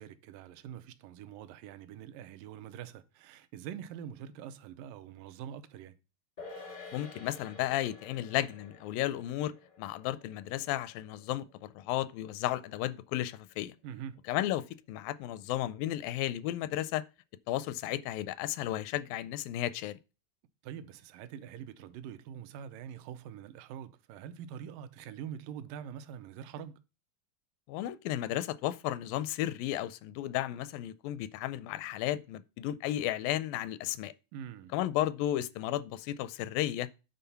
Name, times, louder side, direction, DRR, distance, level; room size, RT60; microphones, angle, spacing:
voice 1, 0.0-6.0 13.8-14.2 20.6-26.8 34.3-34.7, right 9 dB, 80° right, 2.3 m, -44 dB
sound 1, 6.4-13.0 13.3-13.4, left 3 dB, 40° left, 0.5 m, -51 dB
voice 2, 6.9-13.8 14.3-17.0 17.5-20.0 27.7-34.1 34.7-36.9, left 13 dB, 85° left, 2.3 m, -34 dB
9.3 x 3.9 x 5.6 m
omnidirectional pair, 4.0 m